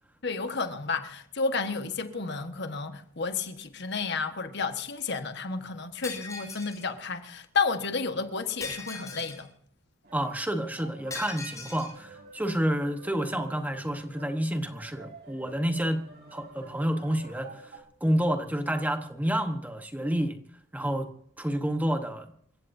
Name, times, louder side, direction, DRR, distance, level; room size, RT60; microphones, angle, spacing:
voice 1, 0.2-9.5, left 4 dB, 55° left, 1.4 m, -31 dB
Shatter, 6.0-6.8 8.6-9.5 11.1-11.9, left 3 dB, 15° left, 6.4 m, -40 dB
sound 1, 10.0-17.8, right 3 dB, 50° right, 3.5 m, -50 dB
voice 2, 10.1-16.0 16.3-20.4 20.7-21.1 21.4-22.3, equal, 10° right, 1.1 m, -29 dB
28.5 x 16.0 x 2.7 m
head